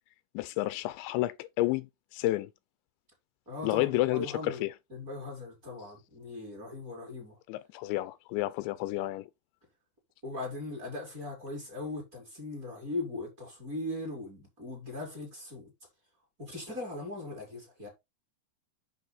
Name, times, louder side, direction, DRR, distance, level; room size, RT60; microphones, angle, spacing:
voice 1, 0.3-2.5 3.6-4.7 7.5-9.3, left 17 dB, 85° left, 2.9 m, -30 dB
voice 2, 3.5-4.6 4.9-7.4 10.2-15.7 16.4-17.9, left 2 dB, 20° right, 4.5 m, -39 dB
9.3 x 6.2 x 4.2 m
omnidirectional pair, 5.2 m